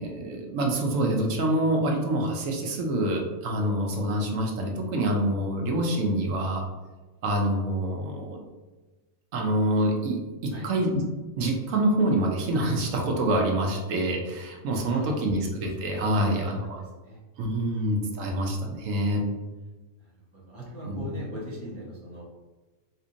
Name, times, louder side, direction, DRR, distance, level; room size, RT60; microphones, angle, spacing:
voice 1, 0.0-6.6 7.2-8.4 9.3-11.0 11.4-16.8 17.4-19.3 20.9-21.2, right 1 dB, 75° right, 1 dB, 1.0 m, -26 dB
voice 2, 14.9-15.3 16.0-16.4 16.7-17.2 17.7-17.9 20.5-22.2, equal, 15° left, -6 dB, 0.6 m, -39 dB
4.2 x 2.8 x 2.5 m, 1.2 s
omnidirectional pair, 1.4 m